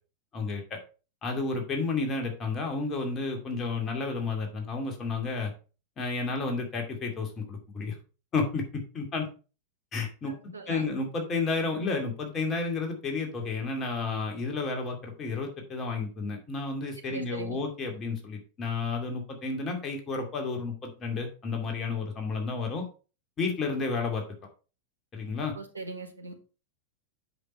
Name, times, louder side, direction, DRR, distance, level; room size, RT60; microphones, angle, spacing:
voice 1, 0.3-0.8 1.2-5.5 6.0-8.0 8.3-8.6 8.9-9.3 9.9-10.3 10.7-22.8 23.4-24.2 25.1-25.5, left 4 dB, 25° left, 2 dB, 2.4 m, -31 dB
voice 2, 10.3-10.9 14.6-14.7 17.1-17.6 25.5-26.3, right 3 dB, 80° right, 4 dB, 1.6 m, -40 dB
7.9 x 6.2 x 4.4 m, 0.35 s
figure-of-eight pair, 90°, 0 cm